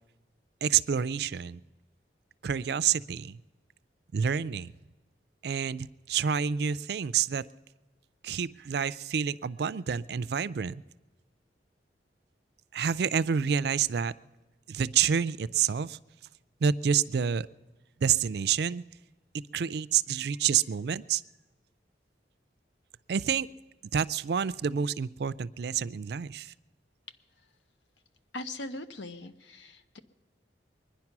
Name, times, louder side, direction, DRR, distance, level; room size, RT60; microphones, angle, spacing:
voice 1, 0.6-1.6 2.4-3.4 4.1-4.7 5.4-7.4 8.2-10.8 12.7-14.1 14.7-16.0 16.6-17.5 18.0-18.8 19.3-21.2 23.1-23.5 23.9-26.5, right 7 dB, 60° right, 17 dB, 0.4 m, -28 dB
voice 2, 28.3-30.0, left 2 dB, 90° left, 10 dB, 1.0 m, -40 dB
22.5 x 10.5 x 6.0 m, 1.3 s
head